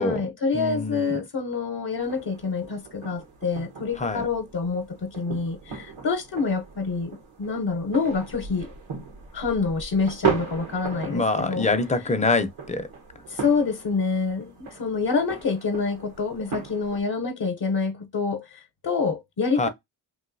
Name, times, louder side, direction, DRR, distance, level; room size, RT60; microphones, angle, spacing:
voice 1, 0.0-8.7 9.3-11.7 13.3-19.7, left 4 dB, 50° left, 0.8 m, -27 dB
voice 2, 0.5-1.2 4.0-4.2 11.0-12.9 19.6-19.7, left 3 dB, 15° left, 0.6 m, -25 dB
sound 1, 2.0-17.0, right 6 dB, 80° right, 1.2 m, -36 dB
3.1 x 2.6 x 2.6 m
cardioid pair, 55°, 48 cm